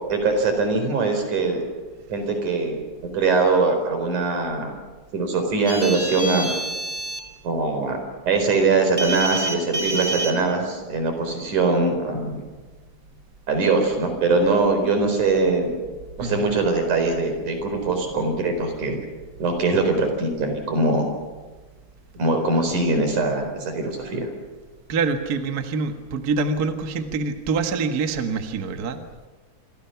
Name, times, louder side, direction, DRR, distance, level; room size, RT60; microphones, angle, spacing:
voice 1, 0.1-1.6 2.1-2.8 3.1-4.7 5.1-6.5 7.4-8.0 8.3-12.4 13.5-15.7 16.2-19.0 19.4-21.1 22.1-24.3, right 3 dB, 75° right, 5 dB, 5.7 m, -22 dB
sound 1, 5.7-7.2 9.0-10.3, right 1 dB, 10° right, 2.1 m, -28 dB
voice 2, 16.2-16.5 24.9-29.1, right 4 dB, 40° right, 6 dB, 1.6 m, -25 dB
27.0 x 26.0 x 5.9 m, 1.3 s
omnidirectional pair, 3.5 m